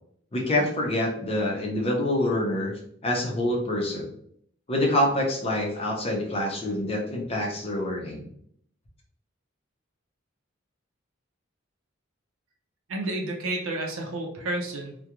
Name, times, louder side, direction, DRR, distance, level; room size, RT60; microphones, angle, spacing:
voice 1, 0.3-2.7 3.0-4.1 4.7-8.3, left 1 dB, 30° left, -1 dB, 0.6 m, -26 dB
voice 2, 12.9-15.0, right 2 dB, 90° right, 1 dB, 0.5 m, -30 dB
2.4 x 2.2 x 2.9 m, 0.66 s
head